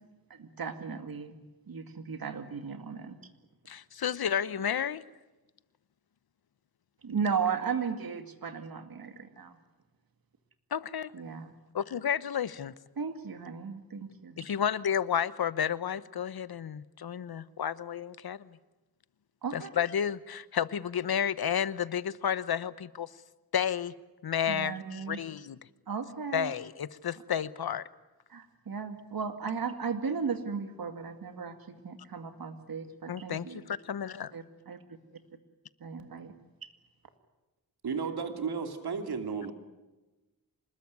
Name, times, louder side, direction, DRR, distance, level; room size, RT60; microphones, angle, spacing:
voice 1, 0.3-1.4 1.7-3.2 7.0-9.6 11.1-11.6 13.0-14.5 19.4-19.7 24.5-25.2 25.9-26.5 28.3-33.6 34.3-34.8 35.8-36.3 36.6-36.7, right 6 dB, 70° right, 8 dB, 2.3 m, -36 dB
voice 2, 3.7-5.0 10.7-11.1 11.7-12.7 14.4-18.5 19.5-23.1 23.5-23.9 24.2-25.6 26.3-27.8 33.1-34.3, left 8 dB, 75° left, 17 dB, 1.0 m, -31 dB
voice 3, 37.8-39.5, right 5 dB, 90° right, 6 dB, 2.7 m, -33 dB
25.5 x 20.5 x 9.6 m, 1.1 s
wide cardioid pair, 100°, 37 cm